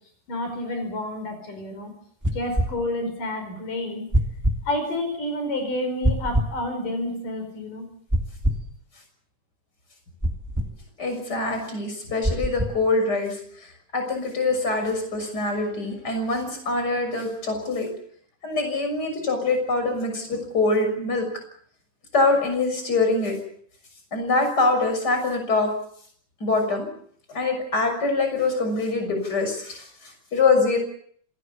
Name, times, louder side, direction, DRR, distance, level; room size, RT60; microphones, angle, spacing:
voice 1, 0.3-1.9 2.3-4.1 4.6-7.8, left 1 dB, 75° left, 6 dB, 6.6 m, -29 dB
sound 1, 2.2-2.7 4.1-4.6 6.0-6.5 8.1-8.7 10.2-10.7 12.2-12.8, right 1 dB, 5° right, 1.7 m, -23 dB
voice 2, 11.0-13.4 13.9-17.9 18.4-21.3 22.1-23.4 24.1-25.7 26.4-26.9 27.3-30.8, left 3 dB, 30° left, 5 dB, 6.9 m, -24 dB
27.0 x 19.5 x 7.1 m, 0.62 s
omnidirectional pair, 3.7 m